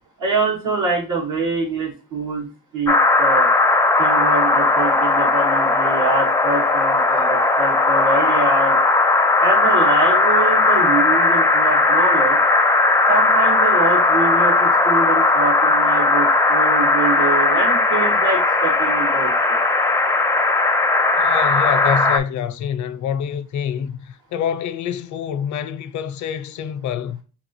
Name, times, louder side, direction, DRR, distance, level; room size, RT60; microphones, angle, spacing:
voice 1, 0.2-2.5 2.7-3.5 4.0-8.8 9.4-12.4 13.1-19.6, right 3 dB, 80° right, 2.0 m, -24 dB
sound 1, 2.9-22.2, left 3 dB, 10° left, 0.4 m, -17 dB
voice 2, 21.1-27.2, left 8 dB, 70° left, 0.5 m, -26 dB
4.5 x 2.9 x 2.9 m
cardioid pair, 90°, 30 cm